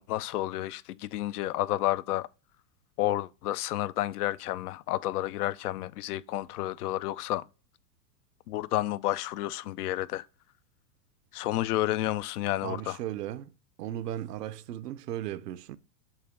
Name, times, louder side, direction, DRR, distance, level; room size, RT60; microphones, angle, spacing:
voice 1, 0.0-2.3 3.0-7.5 8.5-10.3 11.3-13.0, left 15 dB, 70° left, 0.6 m, -30 dB
voice 2, 12.6-13.5 13.8-15.8, right 12 dB, 75° right, 0.7 m, -36 dB
7.2 x 2.6 x 5.0 m
hypercardioid pair, 110°, 48 cm